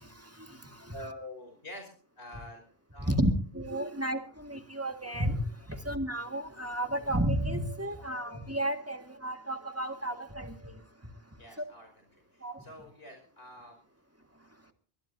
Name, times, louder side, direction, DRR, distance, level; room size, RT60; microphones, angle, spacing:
voice 1, 0.9-1.9 2.2-2.6 2.9-3.1 11.4-12.1 12.3-13.8, left 1 dB, 70° left, 3 dB, 5.4 m, -46 dB
voice 2, 3.6-4.2 4.5-5.4 5.9-9.0 9.2-10.5 12.4-12.5, right 1 dB, 15° right, 6 dB, 1.7 m, -31 dB
21.5 x 21.0 x 2.7 m, 0.43 s
omnidirectional pair, 1.0 m